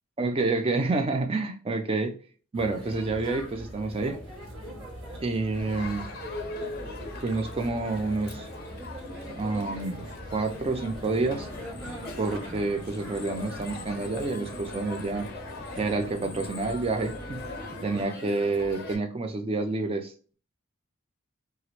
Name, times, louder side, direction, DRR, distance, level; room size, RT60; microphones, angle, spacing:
voice 1, 0.2-2.2 2.5-4.2 5.2-6.1 7.2-8.5 9.4-11.5 12.2-15.3 15.8-17.4 17.8-20.3, right 3 dB, 25° right, 6 dB, 0.3 m, -28 dB
sound 1, 2.5-18.0, equal, 55° right, 1.1 m, -42 dB
Crowd, 5.5-19.0, left 2 dB, 45° left, 0.5 m, -41 dB
2.9 x 2.4 x 2.9 m, 0.41 s
head